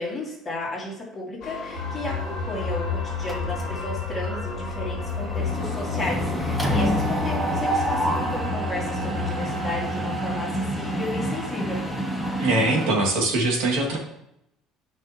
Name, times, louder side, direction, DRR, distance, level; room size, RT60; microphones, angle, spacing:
voice 1, 0.0-11.8, left 2 dB, 10° left, -5 dB, 2.3 m, -33 dB
sound 1, 1.4-7.1, left 4 dB, 45° left, 1.2 m, -39 dB
sound 2, 1.7-12.5, left 5 dB, 30° right, 2.0 m, -31 dB
Mechanisms, 3.3-3.9 4.2-4.4 4.7-12.9, right 1 dB, 5° right, 0.8 m, -28 dB
voice 2, 12.4-14.0, right 2 dB, 90° right, 0 dB, 2.2 m, -22 dB
11.5 x 5.4 x 2.9 m, 0.80 s
cardioid pair, 175°, 0 cm